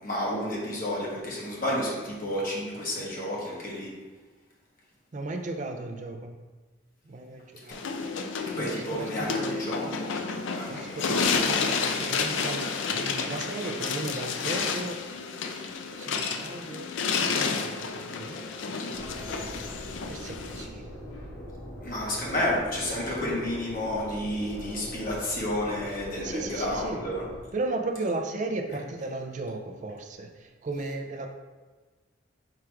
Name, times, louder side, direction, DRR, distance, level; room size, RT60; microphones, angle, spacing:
voice 1, 0.0-3.9 7.6-7.7 8.5-10.1 10.5-11.0 19.1-19.7 21.8-27.2, left 1 dB, 45° left, -5 dB, 1.0 m, -31 dB
voice 2, 5.1-6.4 7.0-8.2 8.6-9.7 10.7-15.0 16.0-16.9 17.2-18.4 18.7-19.7 20.1-20.9 26.2-27.1 27.5-31.3, right 2 dB, 40° right, 4 dB, 0.4 m, -36 dB
sound 1, 7.7-20.7, left 5 dB, 65° left, 0.4 m, -30 dB
sound 2, 18.9-27.4, equal, 90° left, 0.9 m, -41 dB
4.7 x 2.4 x 4.4 m, 1.3 s
head